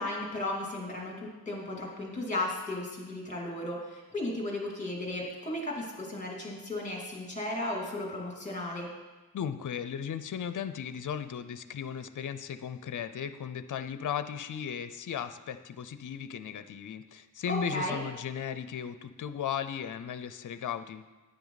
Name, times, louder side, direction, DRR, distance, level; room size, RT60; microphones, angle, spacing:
voice 1, 0.0-8.9 17.5-18.0, left 1 dB, 20° left, -2 dB, 2.8 m, -35 dB
voice 2, 9.3-21.0, left 8 dB, 55° left, 12 dB, 0.6 m, -36 dB
10.5 x 9.3 x 4.0 m, 1.2 s
wide cardioid pair, 100°, 37 cm